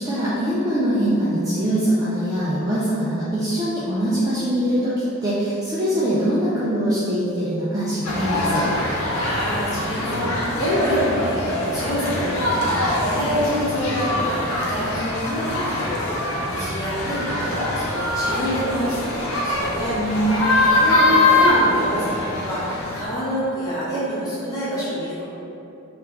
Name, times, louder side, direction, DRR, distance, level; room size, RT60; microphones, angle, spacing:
voice 1, 0.0-5.0 5.2-8.7 19.9-20.5, right 1 dB, 15° right, -9 dB, 0.4 m, -22 dB
sound 1, 8.0-23.0, left 2 dB, 85° left, 0.8 m, -23 dB
voice 2, 9.2-25.2, equal, 15° left, -11 dB, 1.2 m, -27 dB
3.8 x 2.5 x 4.2 m, 2.8 s
head